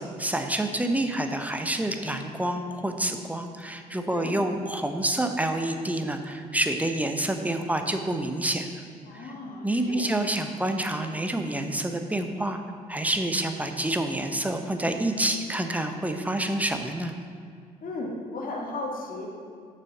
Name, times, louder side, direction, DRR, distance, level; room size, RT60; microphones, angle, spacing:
voice 1, 0.0-8.7 9.1-9.3 9.6-12.6 12.9-17.2, right 1 dB, 5° right, 6 dB, 1.0 m, -28 dB
voice 2, 9.0-10.1 17.8-19.3, left 2 dB, 45° left, -1 dB, 1.9 m, -35 dB
7.0 x 6.8 x 6.1 m, 2.1 s
figure-of-eight pair, 50°, 20 cm